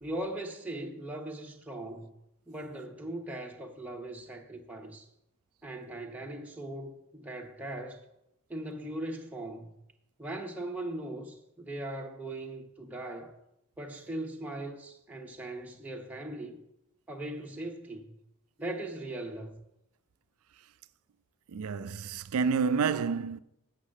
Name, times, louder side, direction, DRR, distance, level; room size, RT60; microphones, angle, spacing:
voice 1, 0.0-2.1 2.5-5.1 5.6-8.0 8.5-9.8 10.2-13.3 13.8-16.6 17.1-18.2 18.6-19.5, right 1 dB, 5° right, 0.8 m, -39 dB
voice 2, 21.5-23.4, right 5 dB, 80° right, 0.5 m, -29 dB
8.2 x 6.4 x 6.3 m
head